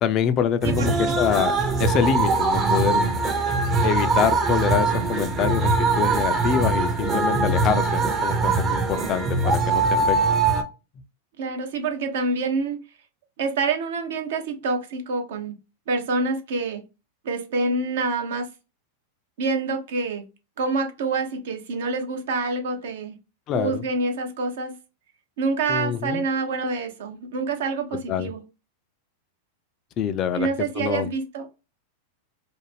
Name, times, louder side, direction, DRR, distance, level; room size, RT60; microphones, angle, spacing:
voice 1, 0.0-1.5 1.8-3.1 3.8-10.2 23.5-23.8 25.7-26.2 28.1-28.3 30.0-30.5 30.8-31.1, left 8 dB, 40° left, 0.3 m, -25 dB
sound 1, 0.6-10.6, right 3 dB, 30° right, 0.6 m, -22 dB
voice 2, 11.4-12.8 13.4-15.5 15.9-16.8 17.2-18.5 19.4-20.2 20.6-23.1 23.5-24.7 25.4-28.4 30.3-31.5, right 3 dB, 65° right, 0.6 m, -26 dB
2.5 x 2.0 x 3.2 m
hypercardioid pair, 95°, 0 cm